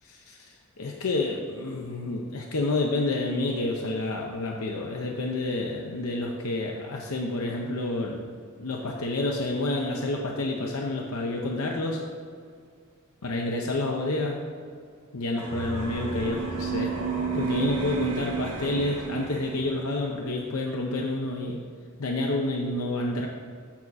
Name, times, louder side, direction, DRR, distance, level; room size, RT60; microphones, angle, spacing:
voice 1, 0.0-8.3 8.6-12.0 13.2-14.5 15.1-16.9 17.3-21.6 22.0-23.3, left 2 dB, 80° left, 0 dB, 0.7 m, -29 dB
sound 1, 15.4-20.0, right 5 dB, 80° right, 1.3 m, -31 dB
7.2 x 7.2 x 4.0 m, 2.1 s
head